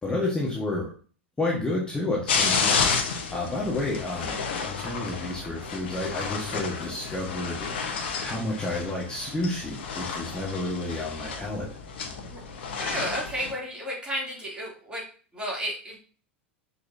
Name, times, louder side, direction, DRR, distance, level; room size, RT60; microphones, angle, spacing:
voice 1, 0.0-0.9 1.4-2.9 3.3-7.7 8.2-11.7, left 2 dB, 15° left, -3 dB, 1.7 m, -30 dB
sound 1, 2.3-13.5, left 5 dB, 65° left, 1.2 m, -31 dB
voice 2, 12.8-15.1 15.3-16.0, equal, 15° right, -3 dB, 3.1 m, -32 dB
6.6 x 5.6 x 2.8 m, 0.40 s
figure-of-eight pair, 85°, 6 cm